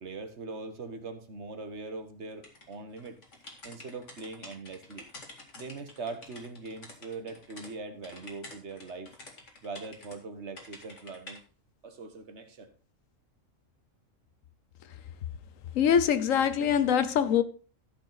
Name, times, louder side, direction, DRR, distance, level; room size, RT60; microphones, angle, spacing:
voice 1, 0.0-3.2 3.6-5.0 5.6-9.1 9.6-11.4 11.8-12.7 16.0-16.1, right 3 dB, 60° right, 1.5 m, -41 dB
sound 1, 2.4-7.7 8.0-10.2 10.6-11.4, left 2 dB, 65° left, 2.5 m, -49 dB
voice 2, 15.7-17.4, left 8 dB, 85° left, 1.2 m, -23 dB
13.0 x 6.6 x 4.0 m
omnidirectional pair, 1.3 m